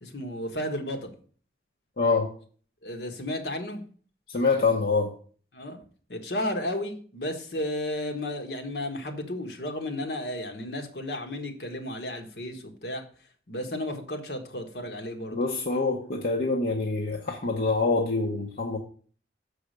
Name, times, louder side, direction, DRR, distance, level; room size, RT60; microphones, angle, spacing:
voice 1, 0.0-1.1 2.8-3.8 5.5-5.8 6.1-13.0 13.5-15.4, left 1 dB, 70° left, 1.4 m, -33 dB
voice 2, 2.0-2.3 4.3-5.1 15.3-18.8, left 3 dB, 55° left, 0.9 m, -25 dB
7.1 x 4.9 x 6.5 m
head